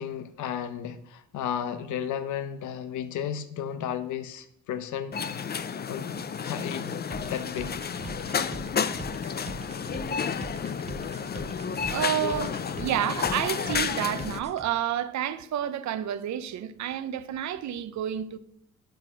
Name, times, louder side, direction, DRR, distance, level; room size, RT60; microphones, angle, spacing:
voice 1, 0.0-5.1 5.9-6.2 6.4-7.0 7.3-7.8, left 9 dB, 80° left, 0.8 m, -33 dB
sound 1, 5.1-14.4, left 7 dB, 35° left, 0.5 m, -31 dB
sound 2, 7.1-14.7, right 3 dB, 20° right, 0.9 m, -41 dB
voice 2, 11.8-18.4, right 10 dB, 65° right, 0.8 m, -30 dB
10.0 x 5.8 x 6.2 m
cardioid pair, 90°, 30 cm